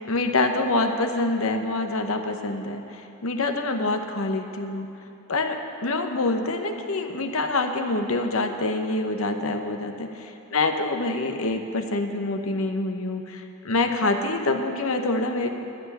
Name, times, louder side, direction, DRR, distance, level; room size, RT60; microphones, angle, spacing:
voice 1, 0.1-4.9 5.3-5.6 5.8-15.5, left 2 dB, 70° left, 5 dB, 0.9 m, -26 dB
12.5 x 6.3 x 9.5 m, 2.8 s
head